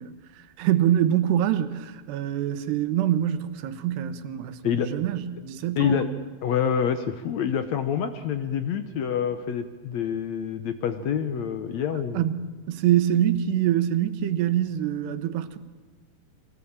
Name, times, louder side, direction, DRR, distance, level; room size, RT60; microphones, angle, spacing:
voice 1, 0.0-6.1 11.9-12.4 12.7-15.6, right 11 dB, 85° right, 3.2 m, -25 dB
voice 2, 5.8-6.1 6.4-12.2, left 8 dB, 75° left, 1.6 m, -27 dB
24.5 x 18.5 x 8.8 m
omnidirectional pair, 4.7 m